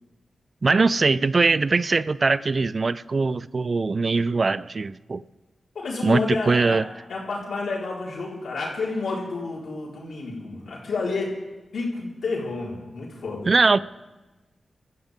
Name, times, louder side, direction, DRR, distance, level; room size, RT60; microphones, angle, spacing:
voice 1, 0.6-5.2 6.0-6.8 13.5-13.8, right 4 dB, 50° right, 0.4 m, -21 dB
voice 2, 5.7-6.8 7.1-11.4 11.7-13.5, left 3 dB, 80° left, 4.5 m, -29 dB
24.5 x 14.0 x 3.7 m
cardioid pair, 45°, 0 cm